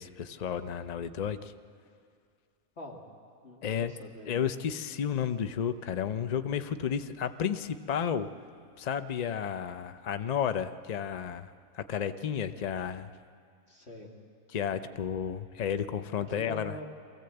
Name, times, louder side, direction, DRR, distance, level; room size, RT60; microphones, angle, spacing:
voice 1, 0.0-1.5 3.6-3.9 4.2-8.3 8.8-13.1 14.5-16.7, left 8 dB, 85° left, 10 dB, 0.3 m, -32 dB
voice 2, 3.4-4.4 13.7-14.1 16.2-16.8, equal, 45° left, -1 dB, 2.4 m, -44 dB
23.5 x 15.5 x 7.9 m, 2.3 s
omnidirectional pair, 1.6 m